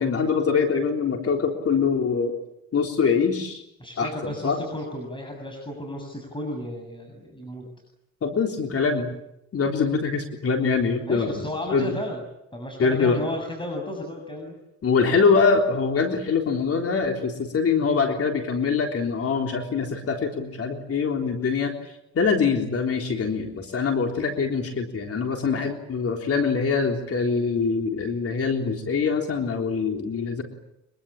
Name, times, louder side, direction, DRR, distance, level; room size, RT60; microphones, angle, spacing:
voice 1, 0.0-2.4 2.7-3.6 4.0-4.6 8.2-9.1 9.5-11.9 12.8-13.2 14.8-30.4, left 5 dB, 50° left, 3 dB, 3.7 m, -24 dB
voice 2, 3.8-7.6 11.0-12.2 12.5-14.6, left 1 dB, 15° left, 2 dB, 7.5 m, -33 dB
24.5 x 23.5 x 8.8 m, 0.84 s
cardioid pair, 90°, 30 cm